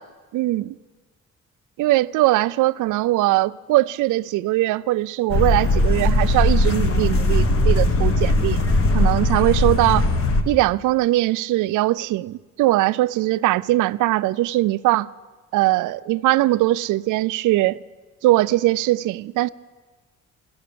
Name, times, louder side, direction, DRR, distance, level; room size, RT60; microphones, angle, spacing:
voice 1, 0.3-0.7 1.8-8.6 8.9-10.1 10.5-15.1 15.5-17.8 18.2-19.5, right 17 dB, 85° right, 0.4 m, -20 dB
sound 1, 5.3-10.4, left 1 dB, 45° left, 1.5 m, -19 dB
16.0 x 12.5 x 6.9 m
cardioid pair, 90°, 30 cm